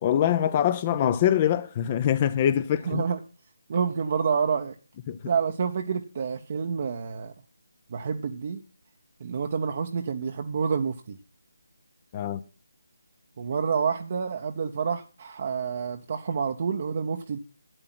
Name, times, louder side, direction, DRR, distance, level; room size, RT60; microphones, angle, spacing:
voice 1, 0.0-3.0 5.1-5.2 12.1-12.4, left 10 dB, 25° left, 0.7 m, -24 dB
voice 2, 2.8-3.2 3.7-4.7 5.2-7.3 7.9-8.6 9.2-11.2 13.4-17.4, right 6 dB, 40° right, 1.0 m, -28 dB
12.5 x 8.9 x 6.0 m
figure-of-eight pair, 160°, 0 cm